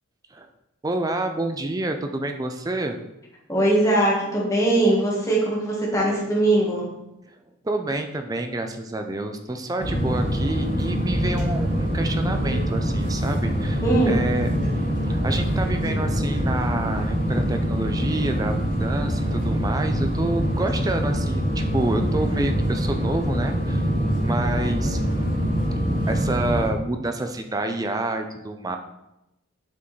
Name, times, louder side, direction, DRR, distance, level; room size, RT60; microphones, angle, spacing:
voice 1, 0.8-3.0 7.3-7.4 7.6-14.5 15.1-23.8 24.2-25.0 26.1-28.8, right 2 dB, 15° right, 6 dB, 0.4 m, -28 dB
voice 2, 3.5-6.9 13.8-14.3, right 1 dB, 15° left, -4 dB, 1.4 m, -21 dB
sound 1, 9.8-26.7, equal, 55° right, 1.9 m, -24 dB
6.9 x 4.7 x 3.1 m, 0.91 s
head